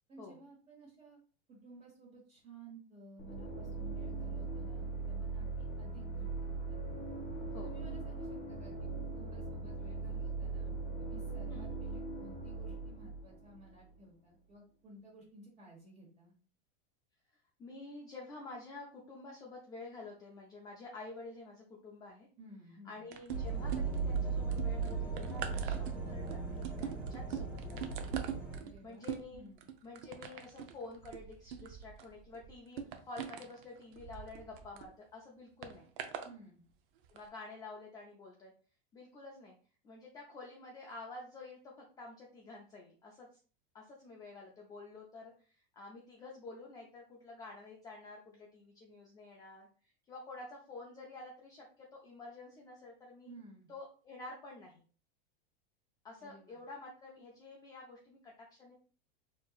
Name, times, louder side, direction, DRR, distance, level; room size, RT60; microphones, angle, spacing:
voice 1, 0.1-1.2 1.5-6.8 7.6-16.3 22.4-23.0 28.6-29.1 29.3-29.6 36.2-36.6 53.2-53.7 56.2-56.7, right 2 dB, 25° right, -4 dB, 1.3 m, -55 dB
sound 1, 3.2-14.0, right 3 dB, 35° left, 0.9 m, -40 dB
voice 2, 17.6-22.3 22.8-26.2 26.6-28.3 28.6-29.4 29.8-35.9 37.1-38.5 38.9-39.5 39.8-43.3 43.7-53.3 53.7-54.8 56.0-58.7, left 3 dB, 15° left, -2 dB, 0.4 m, -50 dB
sound 2, 23.1-24.2 24.5-34.9 35.6-36.3 37.0-37.2, right 8 dB, 60° right, 0.6 m, -43 dB
sound 3, 23.3-28.6, right 5 dB, 5° right, 1.0 m, -37 dB
4.4 x 2.9 x 2.3 m, 0.40 s
supercardioid pair, 150°, 30 cm